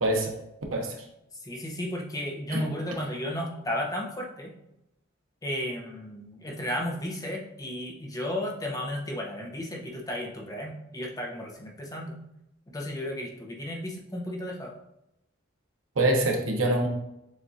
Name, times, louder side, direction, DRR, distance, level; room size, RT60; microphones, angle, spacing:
voice 1, 0.0-0.3 0.7-0.9 2.5-2.7 16.0-16.9, right 1 dB, 90° right, 1 dB, 0.9 m, -24 dB
voice 2, 1.4-4.5 5.4-12.1 12.7-14.7, left 1 dB, 20° left, -1 dB, 0.8 m, -34 dB
7.1 x 2.5 x 2.7 m, 0.82 s
head